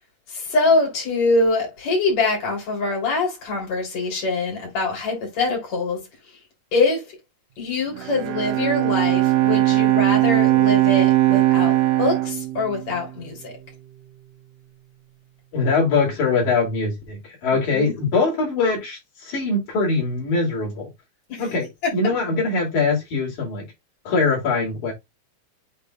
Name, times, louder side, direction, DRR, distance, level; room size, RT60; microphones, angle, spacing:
voice 1, 0.3-6.0 6.7-7.2 7.6-13.5 17.5-17.9 21.3-21.4, left 3 dB, 65° left, 4.8 m, -24 dB
Bowed string instrument, 7.9-13.4, right 16 dB, 70° right, 1.9 m, -19 dB
voice 2, 15.5-20.9 21.4-23.6 24.0-24.9, left 3 dB, 80° left, 4.5 m, -22 dB
8.7 x 4.6 x 2.4 m
omnidirectional pair, 3.4 m